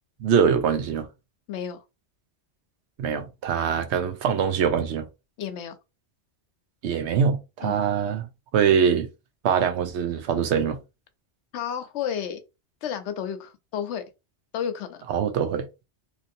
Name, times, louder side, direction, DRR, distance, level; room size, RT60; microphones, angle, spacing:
voice 1, 0.2-1.1 3.0-5.1 6.8-8.3 8.5-9.1 9.4-10.8 15.1-15.7, right 7 dB, 80° right, 0.9 m, -23 dB
voice 2, 1.5-1.8 5.4-5.7 7.6-7.8 11.5-12.4 12.8-14.0 14.5-15.0, left 8 dB, 90° left, 0.9 m, -31 dB
2.9 x 2.6 x 2.6 m
omnidirectional pair, 1.1 m